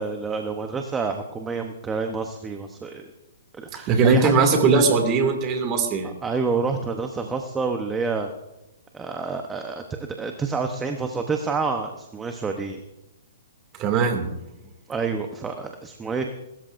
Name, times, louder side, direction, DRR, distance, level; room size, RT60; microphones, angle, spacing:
voice 1, 0.0-3.0 3.5-4.3 6.0-8.3 8.9-12.8 14.9-16.3, right 4 dB, 10° right, 5 dB, 0.9 m, -28 dB
voice 2, 3.9-6.2 13.8-14.3, right 4 dB, 30° right, 5 dB, 2.4 m, -20 dB
24.5 x 13.5 x 2.6 m, 0.96 s
hypercardioid pair, 140°, 0 cm